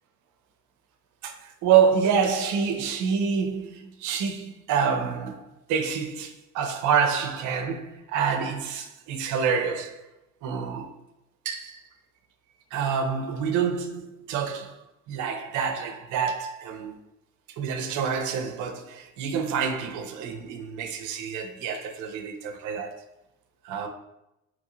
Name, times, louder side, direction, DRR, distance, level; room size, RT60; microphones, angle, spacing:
voice 1, 1.2-10.0 10.4-10.9 11.4-11.8 12.7-17.0 17.5-23.1 23.6-23.9, right 7 dB, 50° right, 0.5 m, -27 dB
2.9 x 2.6 x 2.6 m
hypercardioid pair, 70°, 41 cm